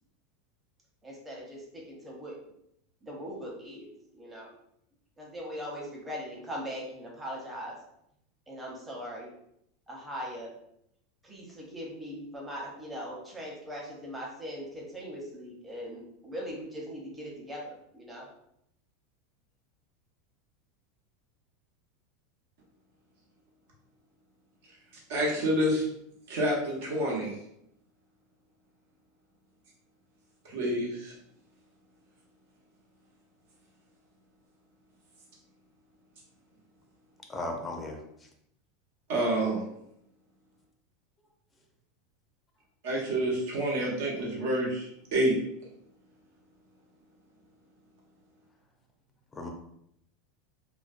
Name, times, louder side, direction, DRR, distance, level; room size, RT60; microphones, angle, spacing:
voice 1, 1.0-2.4 3.0-4.5 5.2-7.8 8.5-9.3 9.9-10.5 11.2-18.3, equal, 10° right, -3 dB, 0.8 m, -40 dB
voice 2, 25.1-25.8 26.3-27.3 30.5-31.1 39.1-39.6 42.8-45.4, right 1 dB, 75° right, -3 dB, 0.9 m, -28 dB
voice 3, 37.3-38.0 49.3-49.5, left 2 dB, 15° left, 1 dB, 0.4 m, -35 dB
2.5 x 2.2 x 2.4 m, 0.76 s
supercardioid pair, 125°, 0 cm